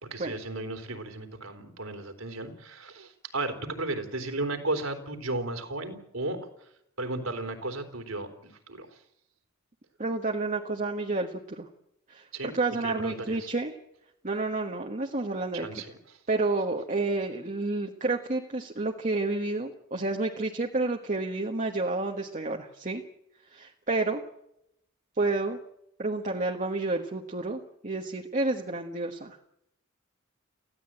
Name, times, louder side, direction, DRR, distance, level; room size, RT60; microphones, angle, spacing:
voice 1, 0.0-6.5 7.0-8.9 12.3-12.6 12.8-13.4 15.5-15.9, right 2 dB, 75° right, 6 dB, 3.6 m, -34 dB
voice 2, 10.0-11.7 12.1-13.7 14.2-15.8 16.3-23.0 23.5-24.2 25.2-25.6 26.0-29.4, right 2 dB, 35° right, 1 dB, 1.4 m, -30 dB
24.0 x 16.0 x 8.9 m, 0.80 s
head